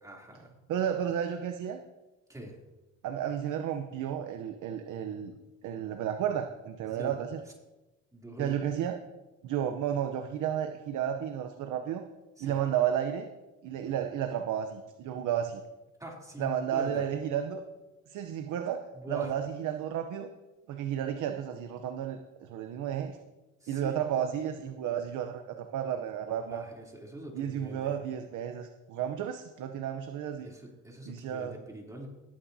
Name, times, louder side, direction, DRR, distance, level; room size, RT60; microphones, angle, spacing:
voice 1, 0.0-0.5 2.3-2.6 6.9-7.1 8.1-8.6 12.4-12.6 16.0-17.0 18.9-19.3 23.6-24.0 26.3-28.0 30.4-32.1, right 1 dB, 10° right, -1 dB, 3.1 m, -43 dB
voice 2, 0.7-1.8 3.0-5.3 5.6-7.4 8.4-9.0 9.4-12.0 12.4-13.3 13.6-15.6 16.4-17.6 18.1-20.3 20.7-23.2 23.7-26.6 27.3-30.5 31.0-31.6, right 9 dB, 85° right, 7 dB, 0.8 m, -32 dB
18.5 x 8.8 x 2.8 m, 1.1 s
cardioid pair, 90°, 30 cm